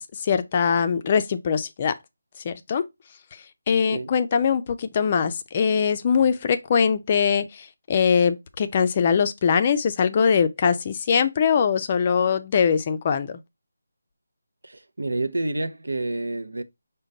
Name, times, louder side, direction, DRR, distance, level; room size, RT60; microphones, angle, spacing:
voice 1, 0.0-1.9 2.4-2.8 3.7-13.4, left 6 dB, 30° left, 0.4 m, -22 dB
voice 2, 14.6-16.6, right 2 dB, 80° right, 0.6 m, -28 dB
5.1 x 2.2 x 3.8 m
figure-of-eight pair, 160°, 0 cm